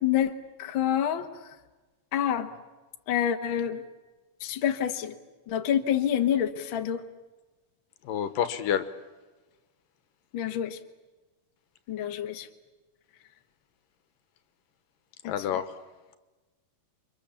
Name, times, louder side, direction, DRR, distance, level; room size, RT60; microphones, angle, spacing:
voice 1, 0.0-1.3 2.1-2.5 3.1-3.8 4.4-5.1 5.5-7.0 10.3-10.8 11.9-12.5 15.2-15.3, left 10 dB, 60° left, 5 dB, 1.3 m, -27 dB
voice 2, 8.0-8.9 15.3-15.7, left 9 dB, 75° left, 11 dB, 2.6 m, -28 dB
30.0 x 24.5 x 7.2 m, 1.2 s
omnidirectional pair, 4.2 m